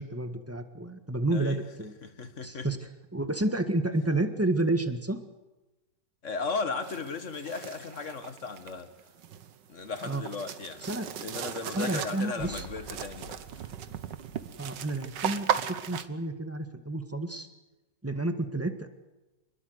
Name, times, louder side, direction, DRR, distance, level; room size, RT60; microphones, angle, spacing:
voice 1, 0.0-1.9 2.4-2.8 3.1-5.2 10.0-10.2 10.8-11.1 11.7-12.6 14.6-17.5 18.0-18.9, right 2 dB, 10° right, 1.5 m, -30 dB
voice 2, 1.3-1.7 2.0-2.7 6.2-8.9 9.7-10.9 11.2-13.7, left 4 dB, 40° left, 1.9 m, -36 dB
sound 1, 6.8-16.1, right 9 dB, 70° right, 1.7 m, -37 dB
sound 2, 12.4-15.9, left 2 dB, 60° left, 4.4 m, -49 dB
27.0 x 21.0 x 8.0 m
omnidirectional pair, 2.0 m